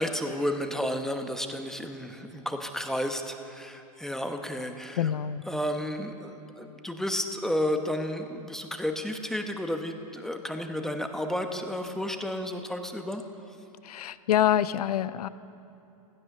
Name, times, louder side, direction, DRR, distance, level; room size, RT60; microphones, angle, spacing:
voice 1, 0.0-5.0 5.5-13.2, equal, ahead, 5 dB, 1.0 m, -32 dB
voice 2, 5.0-5.4 13.8-15.3, left 10 dB, 85° left, 15 dB, 0.7 m, -26 dB
16.5 x 13.0 x 6.7 m, 2.9 s
hypercardioid pair, 130°, 19 cm